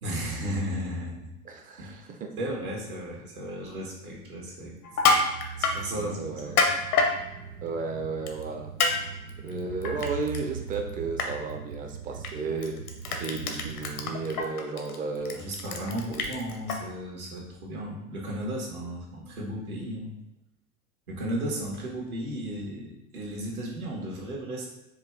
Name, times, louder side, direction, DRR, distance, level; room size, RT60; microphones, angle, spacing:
voice 1, 0.0-1.3 1.8-2.0 2.4-4.7 5.5-6.6 15.3-20.1 21.1-24.7, equal, 75° right, -3 dB, 1.5 m, -34 dB
voice 2, 1.4-2.3 5.9-6.6 7.6-8.7 9.4-12.8 13.1-15.4 16.1-16.3, right 4 dB, 20° right, 3 dB, 0.5 m, -33 dB
Crushing, 4.8-5.8 6.4-7.1 8.3-8.4 8.8-8.9 9.3-10.4 10.7-10.9 11.2-11.3 12.2-12.3 12.6-16.7, left 4 dB, 75° left, 0.8 m, -25 dB
sound 1, 4.9-14.4, right 7 dB, 90° right, 0.6 m, -41 dB
4.8 x 2.4 x 3.4 m, 0.96 s
figure-of-eight pair, 90°, 44 cm